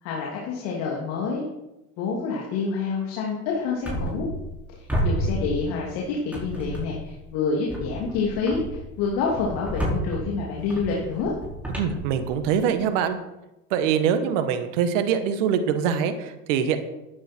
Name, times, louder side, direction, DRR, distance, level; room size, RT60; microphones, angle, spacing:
voice 1, 0.0-1.4 2.0-4.3 4.7-11.3, left 4 dB, 65° left, -2 dB, 2.9 m, -27 dB
sound 1, 3.8-4.6 4.9-6.0 6.3-7.2 7.7-12.8, right 1 dB, 5° right, 5.2 m, -31 dB
voice 2, 11.8-13.2 13.7-16.8, right 8 dB, 75° right, 9 dB, 1.5 m, -23 dB
14.5 x 10.0 x 4.5 m, 0.96 s
hypercardioid pair, 80°, 37 cm